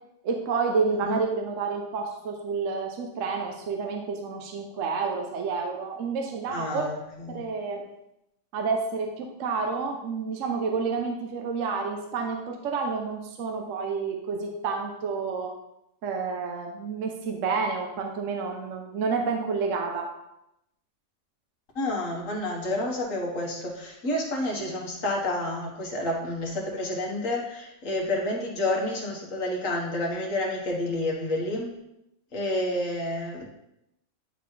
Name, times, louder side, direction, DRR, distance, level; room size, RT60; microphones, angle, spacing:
voice 1, 0.2-6.9 7.3-7.8 8.5-15.5 16.0-20.1, right 4 dB, 65° right, 2 dB, 1.1 m, -29 dB
voice 2, 6.5-7.4 21.8-31.7 32.3-33.5, left 1 dB, 65° left, -1 dB, 1.8 m, -29 dB
10.0 x 4.1 x 3.2 m, 0.86 s
omnidirectional pair, 1.5 m